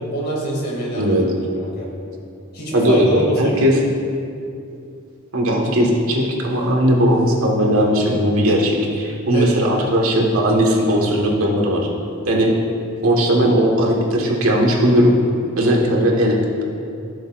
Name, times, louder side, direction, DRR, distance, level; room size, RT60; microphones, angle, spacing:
voice 1, 0.1-1.2 1.6-1.9 2.5-3.7 9.3-9.6, right 2 dB, 50° left, -3 dB, 2.3 m, -24 dB
voice 2, 2.7-3.8 5.3-11.9 12.3-12.5 13.0-15.2 15.6-16.6, equal, 90° right, -1 dB, 1.6 m, -17 dB
16.0 x 6.8 x 2.5 m, 2.5 s
head